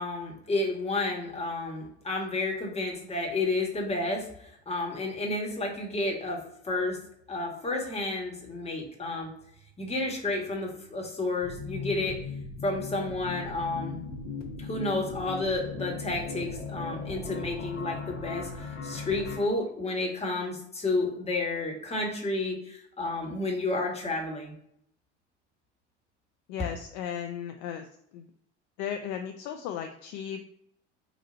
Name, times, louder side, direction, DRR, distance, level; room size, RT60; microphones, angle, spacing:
voice 1, 0.0-7.0 7.3-9.3 9.8-12.2 12.6-14.0 14.6-24.5, left 2 dB, 15° left, 0 dB, 1.4 m, -31 dB
sound 1, 11.4-19.4, left 4 dB, 90° left, 0.8 m, -38 dB
voice 2, 26.5-27.9 28.1-28.3 28.8-30.5, left 8 dB, 50° left, 5 dB, 0.5 m, -35 dB
3.9 x 2.5 x 4.3 m, 0.71 s
figure-of-eight pair, 70°, 36 cm